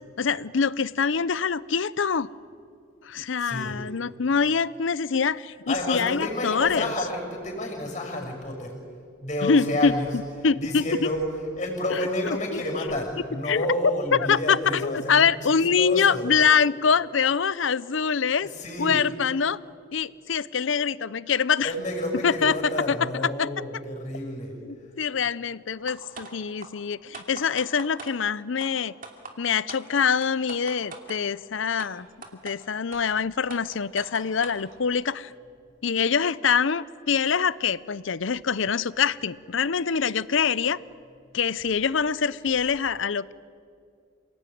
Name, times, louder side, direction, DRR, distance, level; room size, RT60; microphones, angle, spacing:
voice 1, 0.2-2.3 3.0-6.9 9.4-9.9 10.4-11.1 11.9-12.6 13.5-13.7 14.1-18.5 18.8-19.6 19.9-21.7 22.2-22.6 22.9-23.5 24.6-28.9 29.4-32.1 32.4-35.3 35.8-40.8 41.3-43.3, left 6 dB, 75° left, 18 dB, 0.6 m, -24 dB
voice 2, 3.4-3.8 5.7-8.8 9.2-16.3 18.4-19.0 21.6-24.6, left 1 dB, 35° left, 2 dB, 6.4 m, -30 dB
sound 1, 25.9-26.3 26.6-26.7 27.1-28.1 28.6-28.7 29.0-29.3 29.7-29.8 30.2-31.2 31.8-31.9 32.2-32.5 32.9-33.0 33.5-34.6, right 4 dB, 45° right, 2.7 m, -40 dB
28.5 x 18.5 x 9.3 m, 2.3 s
head